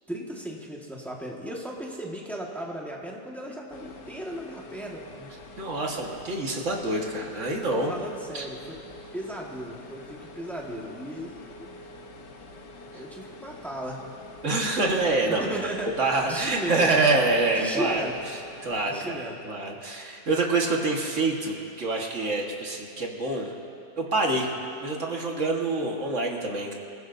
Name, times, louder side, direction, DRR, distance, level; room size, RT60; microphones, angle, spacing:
voice 1, 0.1-5.0 7.7-8.8 9.1-11.7 12.9-14.0 15.3-16.9 17.6-18.1 18.8-19.4, right 1 dB, ahead, -2 dB, 1.5 m, -36 dB
sound 1, 3.7-18.8, left 1 dB, 85° left, 1.8 m, -46 dB
voice 2, 5.6-8.0 8.3-8.4 12.9-13.0 14.4-15.6 16.0-18.1 18.6-23.6 24.0-24.5 24.8-26.8, right 2 dB, 45° right, 0 dB, 1.9 m, -26 dB
28.0 x 15.0 x 2.7 m, 2.6 s
omnidirectional pair, 1.8 m